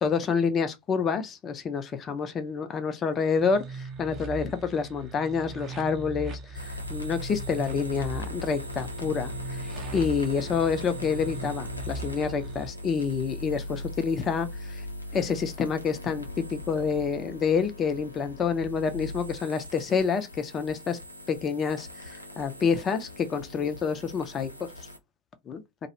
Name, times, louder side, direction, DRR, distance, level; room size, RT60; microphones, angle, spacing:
voice 1, 0.0-9.3 9.9-14.8 15.1-21.0 21.3-24.5 25.5-25.6, left 6 dB, 25° left, 0.5 m, -28 dB
sound 1, 3.2-12.7, right 3 dB, 30° right, 0.6 m, -40 dB
sound 2, 6.5-25.0, left 1 dB, 85° left, 0.5 m, -39 dB
2.4 x 2.1 x 2.7 m
figure-of-eight pair, 90°, 0 cm